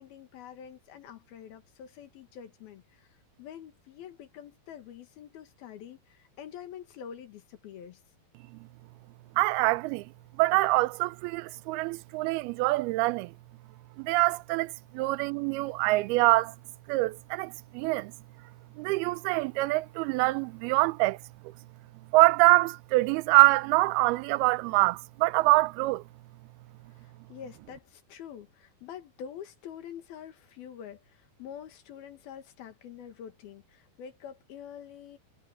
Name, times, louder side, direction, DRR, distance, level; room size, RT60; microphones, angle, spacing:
voice 1, 0.0-8.0 26.9-35.2, left 8 dB, 75° left, 3.5 m, -46 dB
voice 2, 9.4-10.1 10.4-13.3 14.0-16.6 16.9-18.1 18.8-21.2 21.4-21.5 22.1-26.0, right 21 dB, 85° right, 2.5 m, -25 dB
omnidirectional pair, 4.4 m